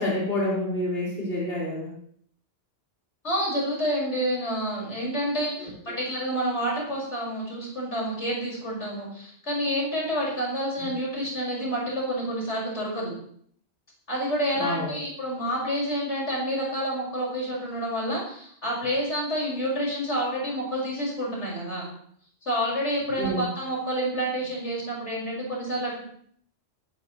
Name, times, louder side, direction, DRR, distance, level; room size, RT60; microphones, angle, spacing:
voice 1, 0.0-1.9 5.6-6.0 10.8-10.9 14.5-15.0 23.2-23.5, left 1 dB, 55° left, -6 dB, 4.7 m, -28 dB
voice 2, 3.2-13.1 14.1-21.9 22.4-26.0, equal, 75° left, -4 dB, 5.8 m, -28 dB
20.0 x 12.5 x 3.2 m, 0.63 s
omnidirectional pair, 1.2 m